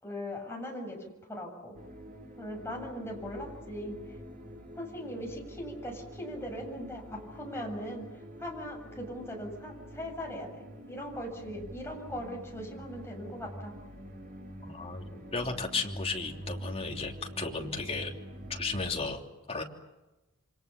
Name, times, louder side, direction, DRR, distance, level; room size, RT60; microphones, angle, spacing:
voice 1, 0.0-1.0 1.3-1.8 2.4-4.0 4.8-13.7, equal, 10° left, 0 dB, 7.3 m, -40 dB
sound 1, 1.7-18.9, equal, 40° right, 4.8 m, -46 dB
voice 2, 14.6-18.2 18.5-19.2 19.5-19.6, left 3 dB, 25° left, 2 dB, 3.1 m, -34 dB
28.0 x 25.5 x 7.0 m, 1.1 s
head